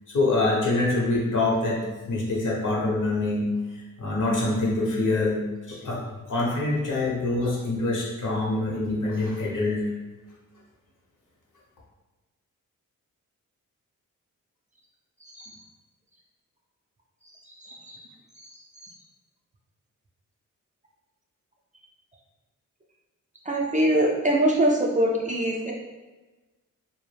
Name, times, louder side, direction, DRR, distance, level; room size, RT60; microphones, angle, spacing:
voice 1, 0.1-1.8 2.1-6.0 6.3-9.9, left 2 dB, 60° left, -4 dB, 0.9 m, -25 dB
voice 2, 17.6-18.0 18.8-18.9 23.5-25.7, right 1 dB, 20° right, -2 dB, 0.4 m, -23 dB
2.2 x 2.1 x 3.2 m, 1.2 s
cardioid pair, 50°, 34 cm